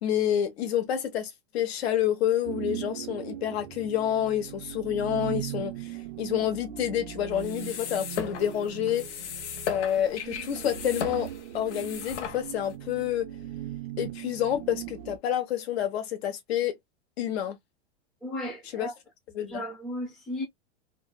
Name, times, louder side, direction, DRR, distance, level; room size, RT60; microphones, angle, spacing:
voice 1, 0.0-9.0 9.7-11.3 11.5-13.3 14.0-16.8 17.2-17.6 18.7-18.9 19.3-19.6, left 10 dB, 65° left, 1.1 m, -28 dB
sound 1, 2.4-15.2, right 13 dB, 50° right, 0.5 m, -39 dB
sound 2, 7.3-12.7, left 8 dB, 85° left, 1.0 m, -37 dB
voice 2, 18.2-18.9 19.4-20.4, left 1 dB, ahead, 0.5 m, -35 dB
3.3 x 2.1 x 2.3 m
supercardioid pair, 175°, 34 cm